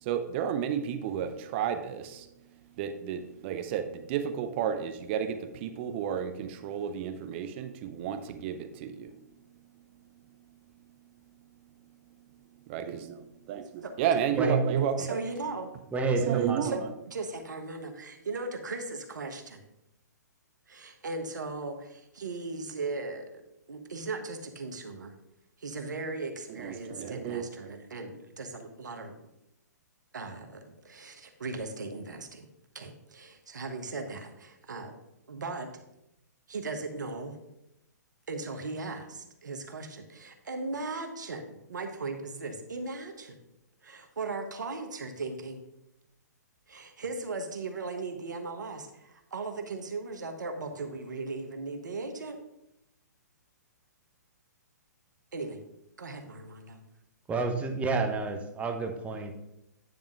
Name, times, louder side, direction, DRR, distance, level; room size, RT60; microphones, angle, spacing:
voice 1, 0.0-2.3 2.8-9.1 12.7-13.2 13.5-13.6 14.0-15.2 16.2-16.9 26.5-27.4, right 8 dB, 40° right, 9 dB, 0.7 m, -31 dB
voice 2, 15.0-15.7 16.6-16.8 17.1-19.6 20.7-23.3 23.7-25.1 25.6-29.1 30.1-32.5 32.7-34.9 35.3-35.7 36.5-37.4 38.3-43.3 43.8-45.6 46.7-52.4 55.3-55.6 56.0-56.8, right 3 dB, 80° right, 6 dB, 1.3 m, -38 dB
voice 3, 15.9-16.7 57.3-59.4, right 3 dB, 15° right, 4 dB, 0.9 m, -29 dB
9.5 x 3.6 x 5.2 m, 0.86 s
hypercardioid pair, 130°, 10 cm